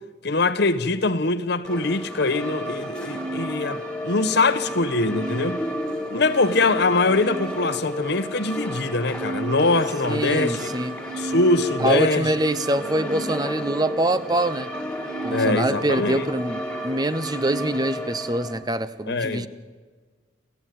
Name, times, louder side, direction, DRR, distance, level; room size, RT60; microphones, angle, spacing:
voice 1, 0.2-5.6 6.1-10.6 11.2-12.3 15.3-16.3 19.1-19.5, left 3 dB, 60° left, 1.1 m, -23 dB
sound 1, 1.7-18.5, equal, 5° left, 2.2 m, -31 dB
voice 2, 10.1-10.9 11.8-14.7 15.2-19.5, right 1 dB, 20° right, 0.8 m, -24 dB
27.5 x 15.0 x 9.3 m
head